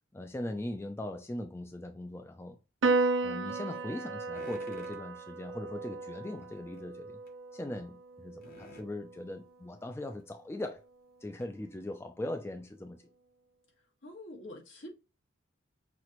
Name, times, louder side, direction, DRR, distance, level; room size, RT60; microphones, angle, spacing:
voice 1, 0.1-2.6 3.2-7.2 7.5-10.8 11.2-13.0, left 1 dB, 15° left, 0.4 m, -40 dB
Piano, 2.8-9.5, right 3 dB, 70° right, 0.5 m, -34 dB
sound 1, 3.5-7.6, right 5 dB, 35° right, 0.7 m, -56 dB
sound 2, 4.3-5.0 6.2-6.9 7.3-7.4 8.4-8.9 10.2-10.3 10.7-10.8 11.4-11.5, left 2 dB, 50° left, 1.0 m, -53 dB
voice 2, 13.8-14.9, left 1 dB, 75° left, 1.7 m, -47 dB
6.0 x 2.9 x 3.0 m
head